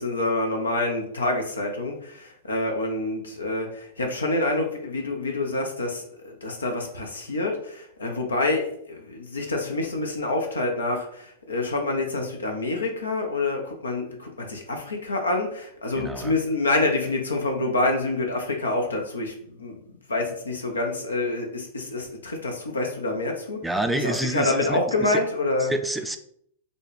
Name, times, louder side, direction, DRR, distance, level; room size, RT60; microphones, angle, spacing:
voice 1, 0.0-19.8 20.1-23.6 24.0-25.7, left 2 dB, 90° left, 2 dB, 0.6 m, -27 dB
voice 2, 16.0-16.3 23.6-25.2 25.6-26.2, right 1 dB, 5° right, 7 dB, 0.4 m, -28 dB
4.1 x 2.2 x 3.2 m, 0.69 s
hypercardioid pair, 105°, 0 cm